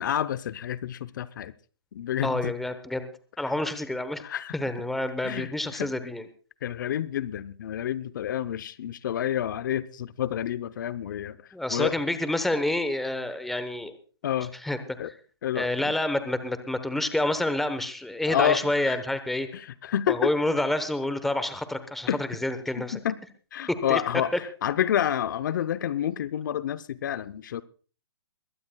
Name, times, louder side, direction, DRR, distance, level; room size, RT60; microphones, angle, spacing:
voice 1, 0.0-1.5 1.9-2.5 4.2-4.6 5.2-5.9 6.6-11.4 11.7-11.9 14.2-14.5 15.0-15.1 15.4-15.7 18.3-19.0 19.5-20.3 22.1-22.2 22.8-23.2 23.5-24.3 24.6-27.6, left 10 dB, 50° left, 0.7 m, -29 dB
voice 2, 2.2-3.1 3.4-4.2 4.5-6.3 11.5-13.9 14.6-14.8 15.0-15.1 15.5-19.5 20.1-23.0 23.7-24.0, left 1 dB, ahead, 1.0 m, -28 dB
22.0 x 16.5 x 2.3 m
hypercardioid pair, 150°, 13 cm